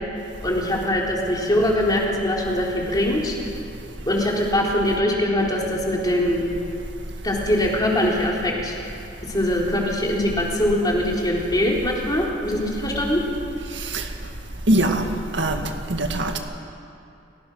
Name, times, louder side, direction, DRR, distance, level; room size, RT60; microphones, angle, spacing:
voice 1, 0.4-3.4 4.1-6.4 7.2-8.8 9.2-13.2, left 1 dB, 20° left, -2 dB, 3.6 m, -22 dB
voice 2, 13.7-14.1 14.7-15.1 15.3-16.4, right 1 dB, 70° right, 4 dB, 2.0 m, -22 dB
30.0 x 17.5 x 6.2 m, 2.6 s
head